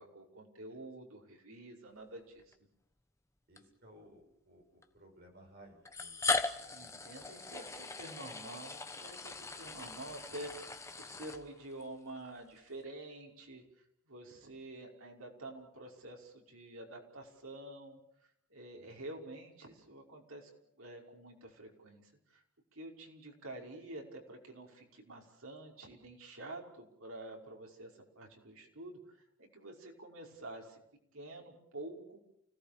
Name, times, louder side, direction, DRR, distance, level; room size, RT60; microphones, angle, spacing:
voice 1, 0.0-2.6 6.7-13.6 14.1-18.0 18.5-20.5 20.8-22.4 22.7-30.8 31.1-32.2, right 2 dB, 85° right, 0 dB, 5.5 m, -48 dB
sound 1, 2.4-2.5 3.6-3.7 4.8-4.9 5.9-11.8, left 3 dB, 15° left, 1.1 m, -39 dB
voice 2, 3.5-6.2 6.7-7.7 18.7-19.0, right 1 dB, 45° right, 2 dB, 6.6 m, -60 dB
29.5 x 17.5 x 6.9 m, 0.77 s
head